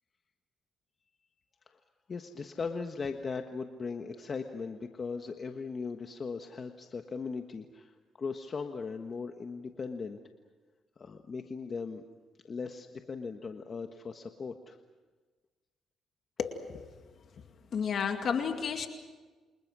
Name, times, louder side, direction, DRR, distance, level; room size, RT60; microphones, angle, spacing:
voice 1, 2.1-10.2 11.0-12.0 12.4-14.8, left 4 dB, 40° left, 5 dB, 1.4 m, -38 dB
voice 2, 16.4-16.9 17.7-18.9, left 6 dB, 55° left, 5 dB, 2.3 m, -32 dB
29.0 x 26.5 x 6.2 m, 1.3 s
cardioid pair, 90°, 0 cm